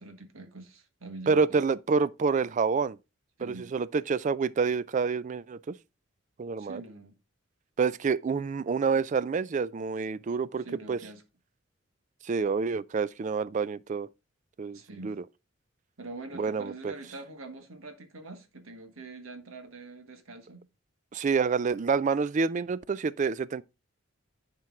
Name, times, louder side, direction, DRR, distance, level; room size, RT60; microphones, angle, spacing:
voice 1, 0.0-1.6 3.4-3.7 6.6-7.1 10.6-11.2 14.7-15.2 16.0-20.7, right 2 dB, 85° right, 1.4 m, -44 dB
voice 2, 1.3-3.0 3.4-5.8 6.4-6.8 7.8-11.0 12.2-14.1 14.6-15.2 16.3-16.9 21.1-23.6, right 5 dB, 35° right, 0.3 m, -28 dB
10.5 x 4.6 x 3.6 m
head